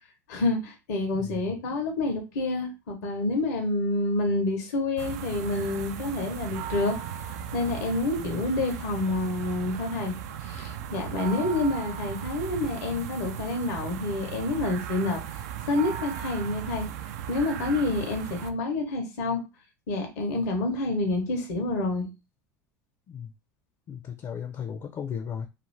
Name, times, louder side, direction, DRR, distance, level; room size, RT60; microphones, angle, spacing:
voice 1, 0.3-7.0 7.5-10.1 10.4-15.4 15.7-16.9 17.3-19.4 19.9-22.1, left 2 dB, 75° left, 3 dB, 0.8 m, -28 dB
voice 2, 1.1-1.4 8.2-8.4 11.5-11.6 23.1-23.3 23.9-25.5, left 7 dB, 40° left, 6 dB, 0.5 m, -36 dB
sound 1, 5.0-18.5, right 9 dB, 75° right, 0.4 m, -37 dB
2.5 x 2.4 x 3.2 m, 0.26 s
hypercardioid pair, 80°, 9 cm